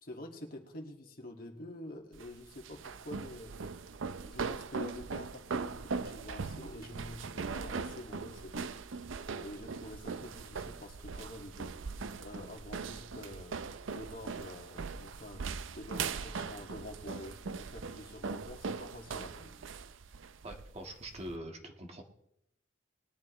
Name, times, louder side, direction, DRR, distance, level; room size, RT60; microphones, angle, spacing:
voice 1, 0.0-3.5 4.3-8.7 9.4-11.7 12.2-15.4 15.7-19.5, left 1 dB, 50° left, 1 dB, 2.1 m, -47 dB
sound 1, 2.1-21.4, right 5 dB, 90° right, 0.6 m, -40 dB
voice 2, 20.4-22.0, right 1 dB, 35° right, 2 dB, 1.7 m, -44 dB
20.5 x 11.0 x 3.2 m, 0.76 s
head